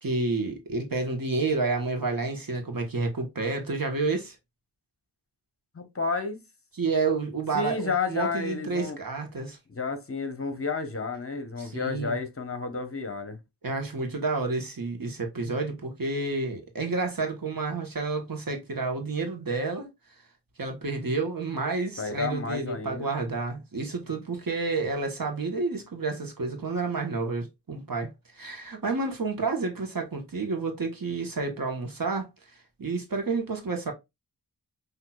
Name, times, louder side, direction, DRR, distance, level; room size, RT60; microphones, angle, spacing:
voice 1, 0.0-4.4 6.8-9.6 11.6-12.2 13.6-19.9 20.6-32.3 32.8-33.9, right 3 dB, 55° right, 1.2 m, -30 dB
voice 2, 5.7-6.4 7.5-9.0 9.7-13.4 22.0-23.1, left 4 dB, 35° left, 1.0 m, -31 dB
5.7 x 2.7 x 2.3 m
wide cardioid pair, 55°, 41 cm